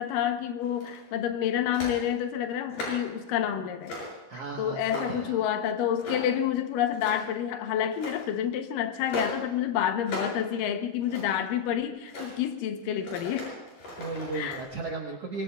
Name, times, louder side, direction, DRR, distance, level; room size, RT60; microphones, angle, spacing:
voice 1, 0.0-3.9 4.6-13.5 14.3-14.6, left 10 dB, 75° left, 7 dB, 2.0 m, -29 dB
sound 1, 0.6-1.1 1.7-2.0 2.5-3.1 3.8-4.2 4.6-5.3 6.0-6.4 6.8-7.4 7.9-8.2 9.1-9.4 10.0-10.4 10.8-11.5 12.0-12.3 13.0-14.6, left 1 dB, 45° left, 7.7 m, -37 dB
voice 2, 4.3-5.4 14.0-15.4, right 3 dB, 85° right, 0 dB, 1.3 m, -35 dB
25.0 x 22.0 x 2.4 m, 1.1 s
omnidirectional pair, 5.1 m